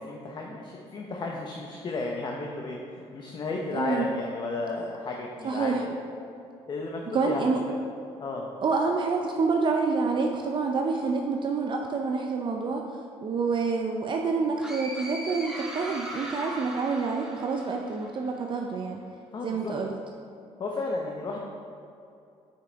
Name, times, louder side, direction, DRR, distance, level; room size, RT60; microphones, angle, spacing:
voice 1, 0.0-5.9 6.7-7.6 8.2-8.5 19.3-19.7 20.6-21.4, left 3 dB, 40° left, -1 dB, 0.8 m, -33 dB
voice 2, 3.7-4.1 5.4-5.8 7.1-7.7 8.6-12.8 13.2-19.0 19.4-19.9, right 4 dB, 45° right, 2 dB, 0.5 m, -27 dB
sound 1, 14.6-18.3, right 1 dB, 5° right, 1.1 m, -39 dB
6.6 x 5.7 x 3.9 m, 2.6 s
cardioid pair, 105°, 12 cm